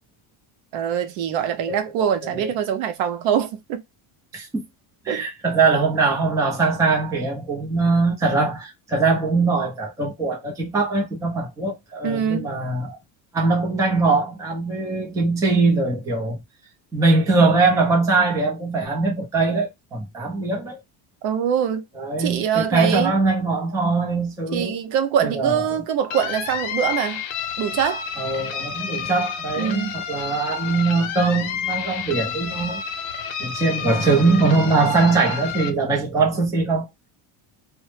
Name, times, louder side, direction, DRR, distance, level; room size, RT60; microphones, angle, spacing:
voice 1, 0.7-3.8 5.1-5.2 12.0-12.5 21.2-21.8 22.2-23.1 24.5-27.2 27.6-28.0 29.6-30.0, right 8 dB, 65° right, 0.7 m, -23 dB
voice 2, 5.0-13.0 13.3-16.4 16.9-20.8 22.0-24.8 25.2-25.6 28.2-32.8 33.4-36.9, right 3 dB, 5° right, 0.4 m, -21 dB
sound 1, 26.1-35.7, left 8 dB, 75° left, 0.7 m, -30 dB
2.1 x 2.0 x 3.1 m
cardioid pair, 160°, 49 cm